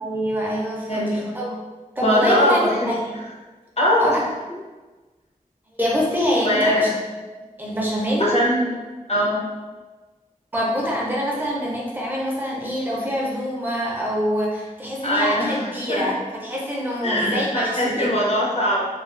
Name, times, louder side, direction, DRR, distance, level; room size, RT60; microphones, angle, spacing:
voice 1, 0.0-1.6 2.0-3.2 4.0-4.2 5.8-6.9 7.6-8.3 10.5-18.1, equal, 15° right, -4 dB, 0.6 m, -25 dB
voice 2, 0.9-1.2 2.0-2.9 3.8-4.6 6.4-6.9 8.2-9.4 15.0-16.1 17.0-18.8, equal, 45° left, -4 dB, 0.7 m, -21 dB
2.4 x 2.3 x 2.4 m, 1.3 s
wide cardioid pair, 70°, 15 cm